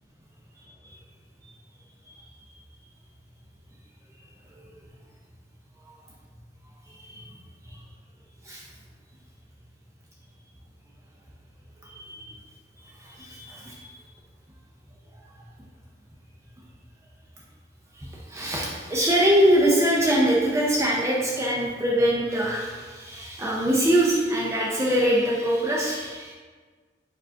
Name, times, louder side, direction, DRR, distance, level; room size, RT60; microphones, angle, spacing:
voice 1, 6.9-7.3 7.7-7.8 8.4-8.6 11.8-12.3 13.0-13.9 18.0-26.3, equal, 15° right, -4 dB, 0.5 m, -23 dB
5.0 x 2.4 x 4.3 m, 1.4 s
head